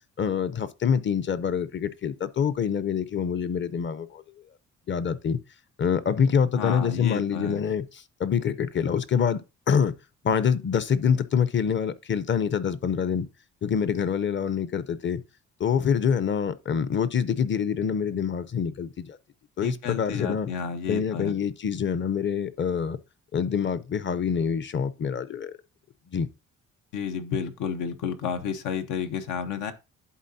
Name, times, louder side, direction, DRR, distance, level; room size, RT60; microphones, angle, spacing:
voice 1, 0.2-4.2 4.9-5.4 5.8-9.4 9.7-9.9 10.2-13.3 13.6-15.2 15.6-19.2 19.6-20.5 20.9-23.0 23.3-25.6 26.1-26.3, left 7 dB, 40° left, 0.7 m, -26 dB
voice 2, 6.6-7.6 19.6-21.3 26.9-29.7, left 6 dB, 90° left, 1.0 m, -31 dB
11.0 x 4.0 x 2.7 m
cardioid pair, 90°, 30 cm